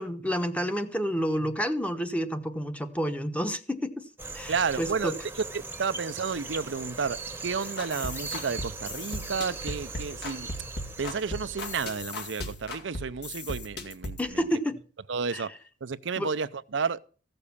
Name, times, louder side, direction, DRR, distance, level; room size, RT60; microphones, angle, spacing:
voice 1, 0.0-4.1 4.3-5.1 14.2-14.8 15.3-15.4 16.2-16.3, equal, 10° left, 1.1 m, -29 dB
sound 1, 4.2-12.3, right 3 dB, 15° right, 1.0 m, -39 dB
voice 2, 4.5-10.5 11.0-14.6 15.1-15.5 15.8-17.0, right 5 dB, 80° right, 0.6 m, -31 dB
sound 2, 7.6-14.3, left 2 dB, 60° left, 2.2 m, -38 dB
15.0 x 6.7 x 7.0 m
head